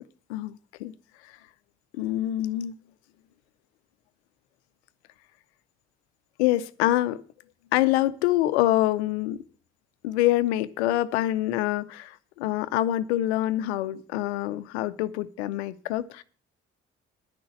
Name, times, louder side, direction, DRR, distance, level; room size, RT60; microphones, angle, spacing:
voice 1, 0.3-0.9 2.0-2.7 6.4-7.2 7.7-9.4 10.0-16.2, left 14 dB, 85° left, 0.6 m, -25 dB
10.5 x 6.2 x 8.3 m
hypercardioid pair, 45°, 33 cm